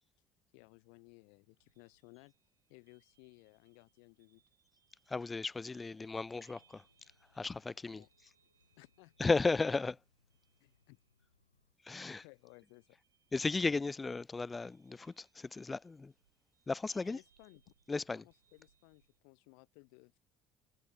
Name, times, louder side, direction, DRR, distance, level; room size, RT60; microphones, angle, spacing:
voice 1, 0.5-2.3 2.7-4.4 7.9-8.1 8.8-9.1 10.6-11.0 12.1-13.0 17.1-17.7 18.1-20.2, left 40 dB or more, 60° left, 1.0 m, -60 dB
sound 1, 1.6-19.2, right 8 dB, 80° right, 3.0 m, -75 dB
voice 2, 5.1-6.8 7.4-8.0 9.2-10.0 11.8-12.2 13.3-16.1 16.7-17.2 17.9-18.2, left 3 dB, 20° left, 0.4 m, -35 dB
sound 2, 5.8-11.7, left 4 dB, 85° left, 5.9 m, -75 dB
figure-of-eight pair, 55°, 0 cm